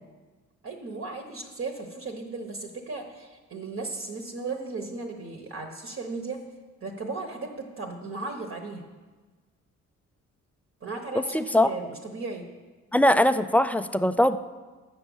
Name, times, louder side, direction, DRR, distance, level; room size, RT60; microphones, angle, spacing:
voice 1, 0.6-6.4 6.8-8.8 10.8-12.5, right 3 dB, 45° right, 2 dB, 1.1 m, -36 dB
voice 2, 11.1-11.7 12.9-14.4, left 1 dB, 5° left, 12 dB, 0.3 m, -21 dB
7.6 x 6.1 x 7.1 m, 1.3 s
cardioid pair, 90°, 30 cm